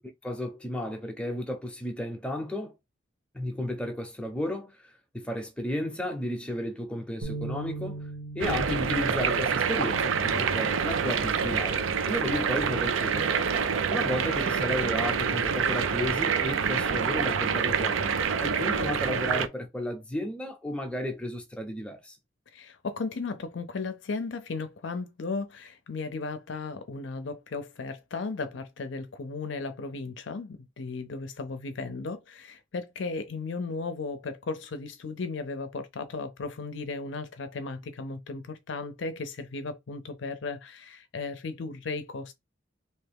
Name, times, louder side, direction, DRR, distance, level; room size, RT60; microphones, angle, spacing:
voice 1, 0.2-2.7 3.3-8.1 8.3-13.5 13.9-22.1, left 1 dB, 5° left, 0.8 m, -33 dB
sound 1, 7.2-13.5, right 3 dB, 55° right, 1.3 m, -42 dB
sound 2, 8.4-19.5, right 6 dB, 90° right, 0.5 m, -27 dB
voice 2, 22.5-42.3, left 3 dB, 65° left, 0.5 m, -35 dB
3.3 x 2.8 x 3.4 m
head